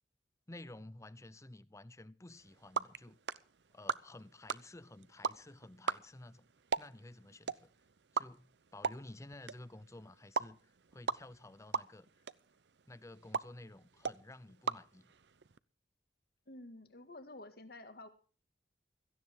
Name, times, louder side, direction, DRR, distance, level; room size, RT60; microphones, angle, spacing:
voice 1, 0.5-3.2 3.7-6.5 6.8-7.7 8.1-12.1 12.9-15.1, left 2 dB, 15° left, 0.7 m, -53 dB
sound 1, 2.3-15.6, right 5 dB, 70° right, 0.7 m, -41 dB
voice 2, 16.5-18.1, left 2 dB, 60° left, 2.1 m, -50 dB
17.0 x 15.0 x 3.7 m
head